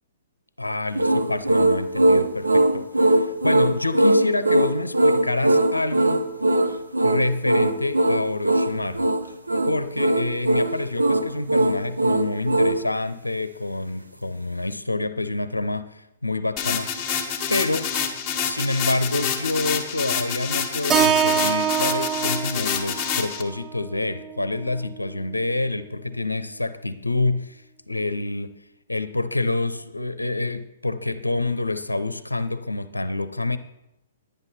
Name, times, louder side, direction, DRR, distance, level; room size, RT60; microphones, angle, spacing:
voice 1, 0.6-6.2 7.0-9.1 9.7-16.9 17.5-17.9 18.4-28.6 28.9-33.6, left 2 dB, 85° left, 12 dB, 0.6 m, -27 dB
sound 1, 0.9-12.8, right 1 dB, 85° right, 0.9 m, -20 dB
sound 2, 16.6-23.4, left 7 dB, 25° left, 1.5 m, -27 dB
Keyboard (musical), 20.9-25.1, right 8 dB, 20° right, 0.5 m, -25 dB
10.5 x 10.5 x 4.2 m, 0.87 s
figure-of-eight pair, 115°, 0 cm